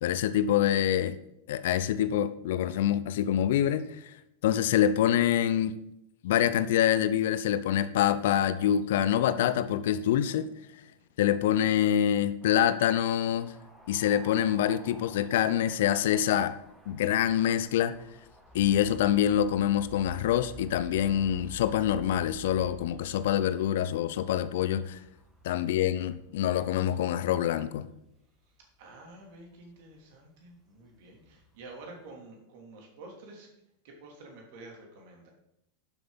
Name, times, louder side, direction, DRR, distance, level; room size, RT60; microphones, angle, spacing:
voice 1, 0.0-1.2 1.5-4.1 4.4-5.7 6.2-10.5 11.2-13.5 13.9-16.6 16.9-17.9 18.5-25.0 25.4-27.9, left 10 dB, 55° left, 0.5 m, -26 dB
sound 1, 12.4-28.0 28.4-32.1, equal, 10° right, 1.9 m, -51 dB
voice 2, 25.8-26.1 28.8-33.5 33.8-35.3, right 2 dB, 50° right, 3.0 m, -49 dB
11.5 x 7.8 x 4.1 m
figure-of-eight pair, 90°, 0 cm